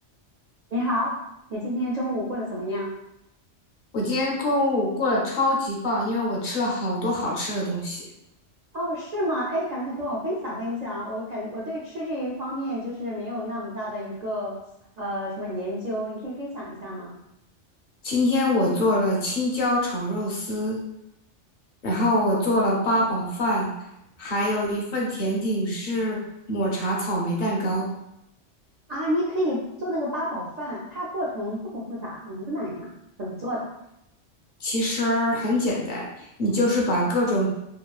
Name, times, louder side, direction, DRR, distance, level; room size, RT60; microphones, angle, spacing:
voice 1, 0.7-1.1 1.5-2.9 8.7-14.6 15.0-17.1 28.9-32.9 33.2-33.7, equal, 65° right, -5 dB, 0.4 m, -29 dB
voice 2, 3.9-8.0 18.0-20.8 21.8-23.7 24.2-26.2 26.5-27.9 34.6-37.5, left 1 dB, 50° left, -2 dB, 0.7 m, -24 dB
2.9 x 2.3 x 2.3 m, 0.83 s
omnidirectional pair, 1.3 m